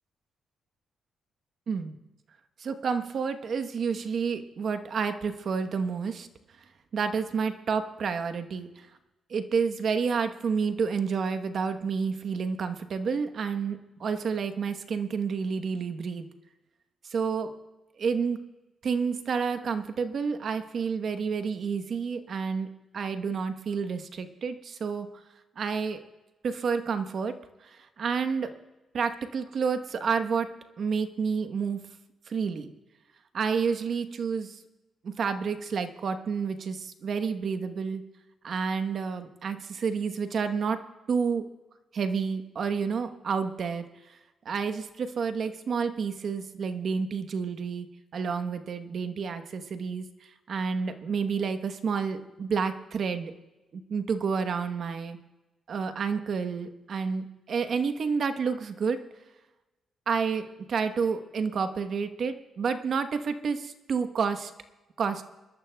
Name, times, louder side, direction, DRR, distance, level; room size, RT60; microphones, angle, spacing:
voice 1, 2.6-6.3 6.9-8.9 9.3-16.3 17.1-17.5 18.0-18.4 18.8-22.7 22.9-25.1 25.6-26.0 26.4-27.3 27.6-28.5 28.9-30.5 30.8-31.8 32.3-32.7 33.3-34.6 35.0-38.0 38.4-40.8 41.1-41.4 41.9-44.2 44.4-47.9 48.1-53.3 53.7-55.2 55.7-59.0 60.1-64.5 65.0-65.2, right 5 dB, 60° right, 9 dB, 1.1 m, -29 dB
25.0 x 13.0 x 2.3 m, 1.1 s
cardioid pair, 75°, 0 cm